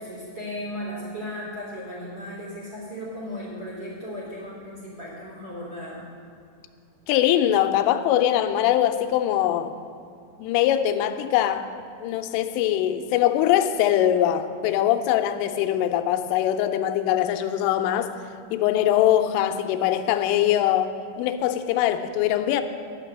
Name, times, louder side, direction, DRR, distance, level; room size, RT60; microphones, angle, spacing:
voice 1, 0.0-6.1, equal, 25° right, -6 dB, 3.7 m, -36 dB
voice 2, 7.1-9.8 10.4-11.7 12.0-18.1 18.5-22.6, left 11 dB, 90° left, 8 dB, 3.1 m, -22 dB
10.5 x 6.6 x 9.1 m, 2.4 s
omnidirectional pair, 5.6 m